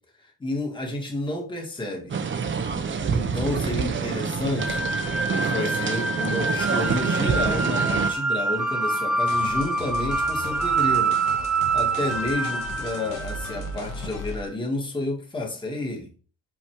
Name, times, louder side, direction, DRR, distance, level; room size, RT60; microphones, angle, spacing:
voice 1, 0.4-2.2 3.1-4.9 5.3-11.2 11.7-16.1, left 2 dB, 15° left, 0 dB, 2.1 m, -30 dB
sound 1, 2.1-8.1, right 5 dB, 40° right, 0.9 m, -26 dB
sound 2, 4.6-13.8, right 3 dB, ahead, 0.8 m, -26 dB
sound 3, 9.2-14.4, left 2 dB, 85° left, 1.7 m, -37 dB
5.7 x 4.1 x 4.8 m, 0.37 s
cardioid pair, 90°, 30 cm